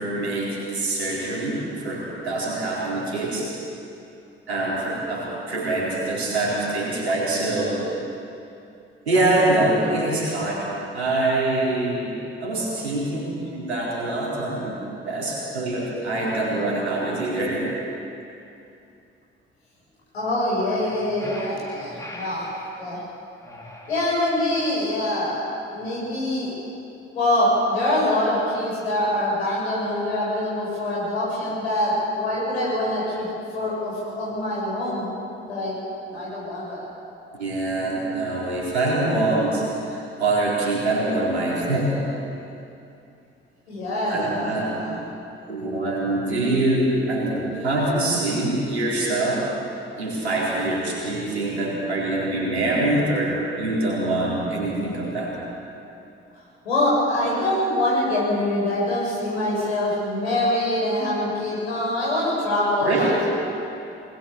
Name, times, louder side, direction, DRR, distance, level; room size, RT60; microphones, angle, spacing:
voice 1, 0.0-3.5 4.5-7.8 9.1-10.7 10.9-14.8 15.0-17.7 37.4-42.1 44.1-44.8 45.5-49.5 50.0-55.3 62.8-63.2, right 2 dB, 80° right, -4 dB, 4.0 m, -24 dB
voice 2, 20.1-22.5 22.8-23.0 23.9-25.4 25.7-26.5 27.1-35.1 35.5-35.7 36.1-36.9 43.7-45.0 56.6-63.1, left 1 dB, 80° left, -6 dB, 7.0 m, -24 dB
sound 1, 20.6-22.7 23.4-24.6, left 1 dB, 10° left, 4.1 m, -41 dB
21.5 x 20.0 x 7.1 m, 2.7 s
figure-of-eight pair, 45°, 32 cm